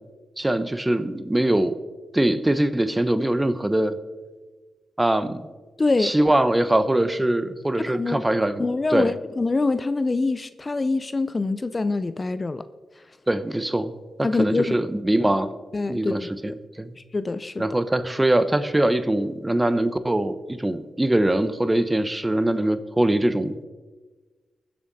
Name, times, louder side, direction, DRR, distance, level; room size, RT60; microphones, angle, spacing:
voice 1, 0.4-1.7 2.1-4.0 5.0-5.4 6.0-8.6 8.9-9.1 13.3-13.9 14.2-15.5 15.9-16.9 17.6-23.6, right 1 dB, 15° right, 12 dB, 0.9 m, -22 dB
voice 2, 5.8-6.1 7.8-8.2 8.6-12.6 14.2-14.8 15.7-16.3 17.1-17.6, left 3 dB, 35° left, 13 dB, 0.5 m, -24 dB
21.0 x 7.7 x 4.1 m, 1.3 s
cardioid pair, 65°, 0 cm